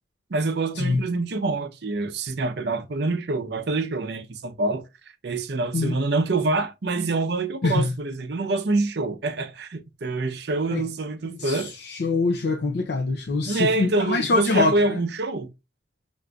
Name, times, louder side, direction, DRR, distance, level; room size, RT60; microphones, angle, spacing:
voice 1, 0.3-4.8 5.2-11.7 13.4-15.5, right 2 dB, 60° right, 0.6 m, -26 dB
voice 2, 7.6-7.9 10.7-10.8 11.3-15.0, left 3 dB, 60° left, 0.5 m, -24 dB
6.2 x 2.5 x 2.3 m
head